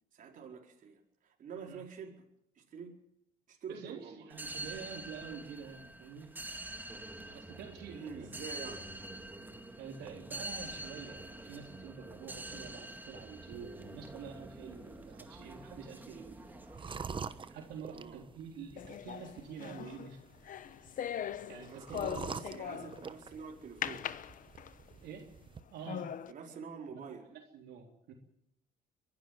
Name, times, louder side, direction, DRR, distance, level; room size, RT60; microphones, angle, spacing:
voice 1, 0.1-2.2 2.6-3.0 3.5-4.3 7.9-8.9 17.9-18.2 21.7-24.1 26.3-27.3, right 6 dB, 50° right, 1 dB, 4.6 m, -47 dB
voice 2, 3.7-6.3 7.2-8.3 9.8-16.4 17.5-20.2 21.5-22.4 22.7-22.8 25.0-25.3 25.7-26.1 26.9-27.0 27.3-28.1, right 6 dB, 75° right, 1 dB, 3.7 m, -47 dB
sound 1, 4.3-17.8, right 1 dB, 10° right, 2.0 m, -46 dB
sound 2, 13.5-25.6, right 5 dB, 30° right, 1.1 m, -48 dB
sound 3, 18.8-23.1 23.8-24.9 25.4-25.5 25.9-26.3, left 10 dB, 50° left, 1.1 m, -40 dB
23.5 x 12.0 x 9.4 m, 0.78 s
cardioid pair, 110°, 17 cm